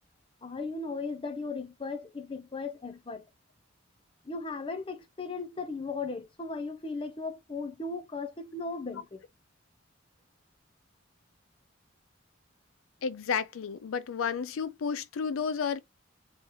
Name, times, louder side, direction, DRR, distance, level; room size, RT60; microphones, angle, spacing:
voice 1, 0.4-3.3 4.3-9.2, left 3 dB, 25° left, 0.5 m, -37 dB
voice 2, 13.0-15.8, left 6 dB, 90° left, 0.4 m, -31 dB
3.1 x 2.8 x 3.8 m
head